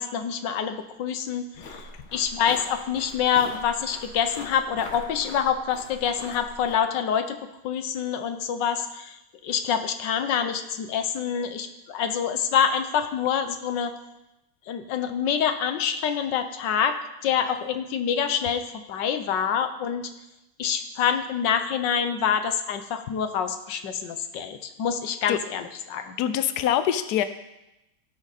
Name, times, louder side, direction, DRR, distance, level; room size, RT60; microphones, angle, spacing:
voice 1, 0.0-1.8 2.1-7.4 7.6-9.2 9.4-13.9 14.7-16.9 17.2-20.1 20.6-26.2, left 8 dB, 90° left, 8 dB, 1.5 m, -26 dB
sound 1, 1.5-6.8, left 2 dB, 55° left, 1.7 m, -42 dB
voice 2, 26.2-27.2, left 10 dB, 70° left, 11 dB, 1.1 m, -24 dB
17.5 x 6.4 x 4.1 m, 0.92 s
omnidirectional pair, 1.9 m